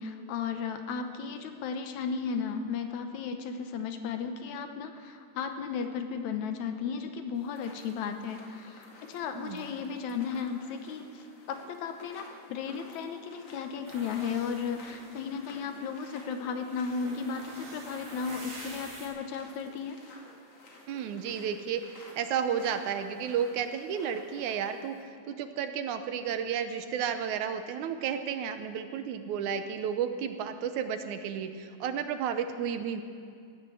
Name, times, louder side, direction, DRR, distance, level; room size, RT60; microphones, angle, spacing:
voice 1, 0.0-20.0, left 6 dB, 75° left, 6 dB, 2.2 m, -35 dB
sound 1, 7.3-25.0, left 2 dB, 55° left, 3.1 m, -53 dB
voice 2, 9.3-9.6 20.9-33.0, right 8 dB, 80° right, 8 dB, 2.2 m, -32 dB
sound 2, 13.9-15.3 15.8-19.1, right 2 dB, 60° right, 4.7 m, -47 dB
16.0 x 9.9 x 7.7 m, 2.3 s
omnidirectional pair, 3.5 m